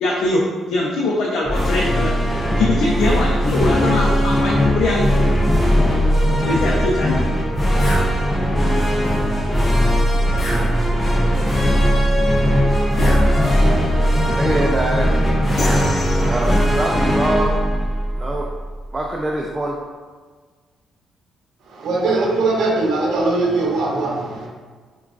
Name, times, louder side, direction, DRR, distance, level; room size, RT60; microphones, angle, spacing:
voice 1, 0.0-0.4 0.7-2.1 2.6-5.4 6.4-7.2, left 2 dB, 80° left, -5 dB, 0.5 m, -21 dB
sound 1, 1.4-18.9, equal, 15° left, 0.6 m, -18 dB
sound 2, 7.8-8.1 10.4-11.2 13.0-13.8 15.6-16.7, left 1 dB, 40° left, 0.9 m, -29 dB
voice 2, 14.4-15.1 16.2-17.6 18.2-18.5 18.9-19.8, right 1 dB, 20° right, -1 dB, 0.4 m, -23 dB
voice 3, 21.7-24.5, right 3 dB, 70° right, -2 dB, 0.6 m, -20 dB
4.8 x 2.3 x 2.4 m, 1.5 s
cardioid pair, 90°, 0 cm